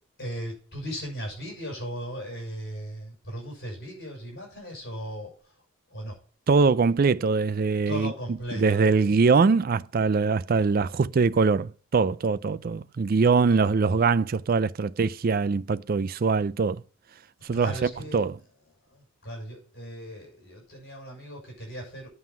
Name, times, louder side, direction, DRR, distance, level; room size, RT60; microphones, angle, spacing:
voice 1, 0.2-5.5 5.9-6.2 7.9-9.0 17.5-18.3 18.9-22.1, equal, 50° left, 6.2 m, -37 dB
voice 2, 6.5-8.1 8.5-16.8 17.4-18.4, right 4 dB, 40° right, 0.4 m, -23 dB
9.6 x 5.6 x 5.8 m
head